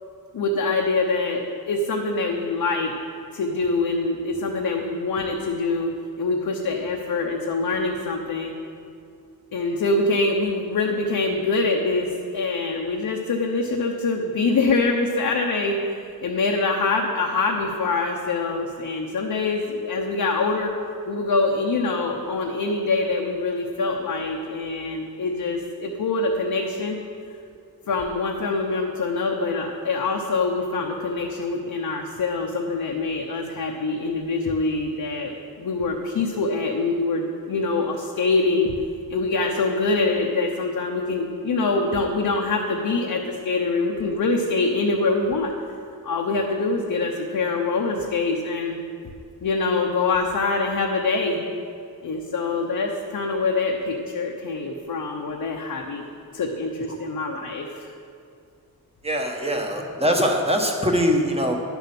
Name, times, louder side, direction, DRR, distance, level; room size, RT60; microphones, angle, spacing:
voice 1, 0.3-2.9 3.3-8.5 9.5-20.7 21.1-27.0 27.9-38.7 39.1-45.5 46.0-48.8 49.4-51.4 52.0-56.1 56.3-57.8, left 3 dB, 75° left, 0 dB, 0.9 m, -24 dB
voice 2, 59.0-61.6, equal, 15° right, 2 dB, 1.1 m, -22 dB
11.0 x 7.1 x 6.0 m, 2.4 s
wide cardioid pair, 140°, 36 cm